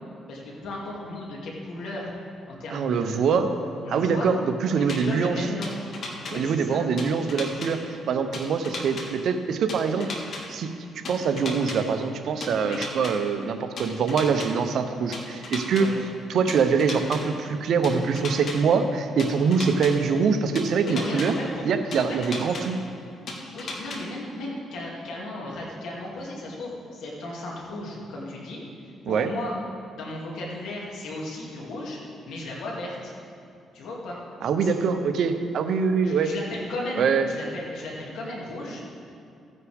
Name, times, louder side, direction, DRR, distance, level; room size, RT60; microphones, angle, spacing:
voice 1, 0.3-2.1 2.5-3.5 3.8-4.3 4.7-5.7 6.2-6.8 12.6-12.8 15.8-15.9 20.8-22.2 23.5-29.5 29.9-32.0 32.3-33.1 33.7-34.2 34.6-34.7 36.0-38.8, left 1 dB, 80° left, -3 dB, 2.6 m, -35 dB
voice 2, 2.7-3.5 3.9-5.5 6.3-10.1 10.5-15.9 16.3-21.3 21.7-22.8 29.1-29.3 34.4-36.3 37.0-37.3, right 5 dB, 70° right, 8 dB, 0.7 m, -24 dB
sound 1, 4.9-5.0 5.6-6.3 7.0-7.7 8.3-9.0 9.7-10.4 11.0-11.8 12.4-13.1 13.8-14.5 15.1-15.8 16.5-17.2 17.8-18.5 19.2-19.9 20.5-21.3 21.9-22.6 23.3-24.0, left 3 dB, 55° left, 1.7 m, -34 dB
14.5 x 9.5 x 3.6 m, 2.5 s
cardioid pair, 90°, 0 cm